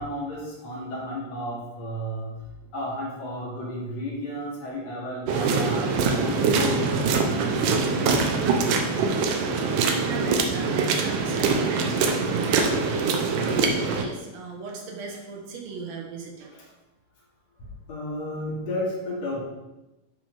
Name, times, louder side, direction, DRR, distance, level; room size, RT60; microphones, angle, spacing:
voice 1, 0.0-2.4 2.7-5.9 6.2-8.2 17.9-19.4, left 1 dB, 50° left, -5 dB, 3.8 m, -33 dB
sound 1, 5.3-14.0, right 4 dB, 75° right, 2.5 m, -23 dB
voice 2, 9.4-16.6, right 4 dB, 55° right, 0 dB, 2.5 m, -37 dB
11.5 x 5.1 x 5.0 m, 1.0 s
omnidirectional pair, 4.0 m